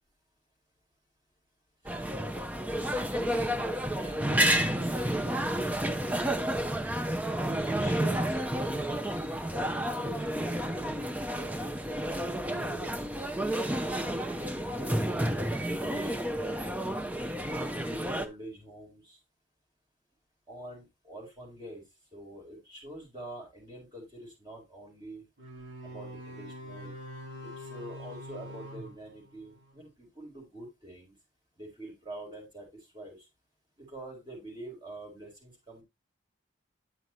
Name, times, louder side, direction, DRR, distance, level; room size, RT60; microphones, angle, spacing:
sound 1, 1.9-18.3, right 1 dB, 10° right, 0.6 m, -30 dB
voice 1, 3.2-3.5 3.9-6.6 7.4-8.7 9.3-10.9 11.3-12.9 13.8-15.0 15.3-15.5 15.8-16.7 17.5-19.2 20.5-21.8 22.1-25.2 25.8-26.9 27.4-31.1 31.6-32.7 32.9-33.2 33.8-35.8, right 1 dB, 25° right, -1 dB, 4.4 m, -45 dB
sound 2, 25.4-29.8, equal, 70° right, 5.8 m, -44 dB
9.5 x 5.8 x 3.1 m, 0.22 s
head